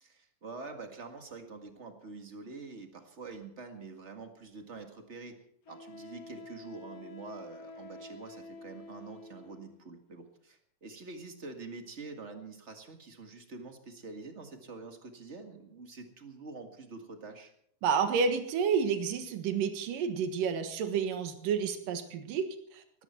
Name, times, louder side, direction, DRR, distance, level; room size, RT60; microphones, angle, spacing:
voice 1, 0.0-5.4 5.7-17.5, right 3 dB, 30° right, 5 dB, 1.4 m, -46 dB
Wind instrument woodwind instrument, 4.4-4.5 5.7-9.7, left 2 dB, 50° left, 2.8 m, -48 dB
voice 2, 17.8-23.0, right 6 dB, 80° right, 7 dB, 3.1 m, -30 dB
18.5 x 15.5 x 4.5 m, 0.69 s
omnidirectional pair, 3.8 m